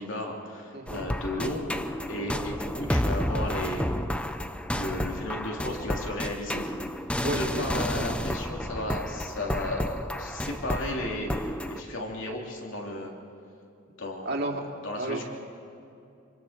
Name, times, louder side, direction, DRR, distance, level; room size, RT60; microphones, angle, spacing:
voice 1, 0.0-4.2 4.7-6.7 7.3-13.1 14.0-15.2, left 1 dB, 65° left, 0 dB, 3.3 m, -34 dB
voice 2, 0.7-1.0 7.2-8.2 14.3-14.6 15.0-15.2, right 1 dB, 50° right, 1 dB, 2.4 m, -32 dB
sound 1, 0.9-11.8, left 1 dB, 5° left, 0.6 m, -31 dB
27.5 x 25.5 x 4.5 m, 2.6 s
head